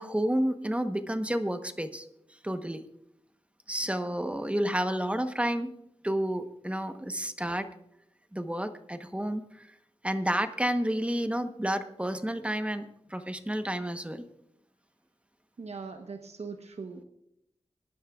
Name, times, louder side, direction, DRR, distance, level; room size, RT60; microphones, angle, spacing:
voice 1, 0.0-2.1 2.4-2.8 3.7-5.7 6.0-7.7 8.3-9.7 10.0-12.8 13.1-14.2, right 1 dB, 10° right, 8 dB, 1.1 m, -30 dB
voice 2, 15.6-17.0, right 4 dB, 70° right, 5 dB, 1.0 m, -40 dB
22.0 x 11.5 x 2.4 m, 0.79 s
wide cardioid pair, 60°, 11 cm